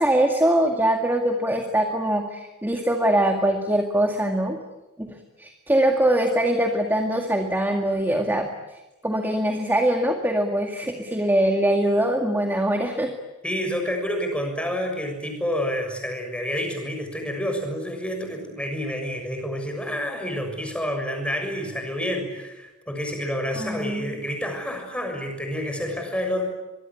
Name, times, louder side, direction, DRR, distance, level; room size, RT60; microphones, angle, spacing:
voice 1, 0.0-4.6 5.0-8.5 9.0-13.1 23.5-24.2, right 1 dB, 10° right, 3 dB, 2.1 m, -22 dB
voice 2, 13.4-26.4, equal, 5° left, 4 dB, 6.7 m, -29 dB
25.0 x 22.5 x 10.0 m, 1.0 s
head